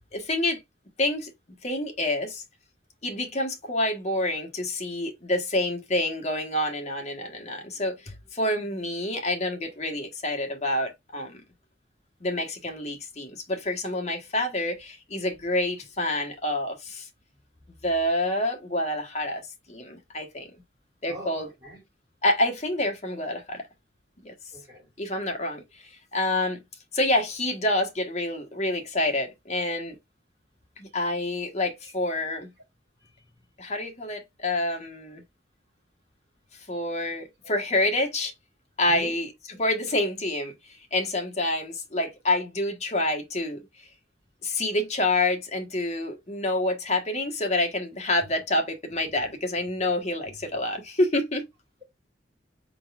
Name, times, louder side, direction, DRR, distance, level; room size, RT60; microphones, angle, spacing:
voice 1, 0.1-0.6 1.0-1.3 1.6-2.4 3.0-11.4 12.2-17.1 17.8-19.4 19.7-20.5 21.0-21.5 22.2-23.6 24.2-24.3 25.0-26.6 26.9-30.0 30.8-32.5 33.6-35.2 36.7-38.3 38.8-43.9 44.4-51.5, left 1 dB, 40° left, 1.2 m, -28 dB
voice 2, 21.1-21.8 24.5-24.9 33.0-33.1 38.8-39.2, equal, 20° right, 3.4 m, -42 dB
4.5 x 3.9 x 2.4 m
head